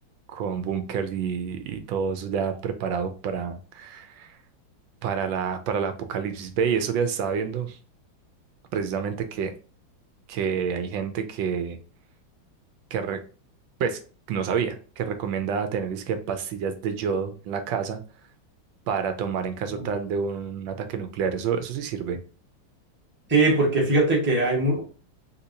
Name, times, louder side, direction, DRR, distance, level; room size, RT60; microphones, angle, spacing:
voice 1, 0.3-4.4 5.0-7.8 8.7-9.5 10.3-11.8 12.9-13.2 13.8-14.0 14.3-18.0 18.9-22.2, right 6 dB, 80° right, 1.4 m, -28 dB
voice 2, 23.3-24.8, right 2 dB, 10° right, 0.9 m, -21 dB
3.6 x 2.8 x 2.6 m
omnidirectional pair, 2.1 m